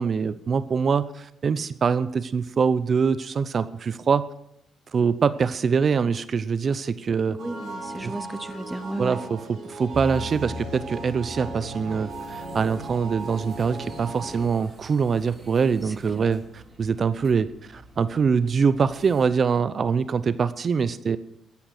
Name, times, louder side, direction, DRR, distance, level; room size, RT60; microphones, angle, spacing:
voice 1, 0.0-4.3 4.9-7.4 8.0-8.1 9.0-21.2, right 6 dB, 45° right, 0.6 m, -24 dB
voice 2, 7.3-9.2 16.2-16.3, right 1 dB, 10° right, 0.8 m, -34 dB
sound 1, 7.4-14.5, right 2 dB, 60° right, 6.1 m, -37 dB
sound 2, 9.9-19.2, equal, 25° right, 3.8 m, -43 dB
14.5 x 10.0 x 6.5 m
cardioid pair, 85°, 0 cm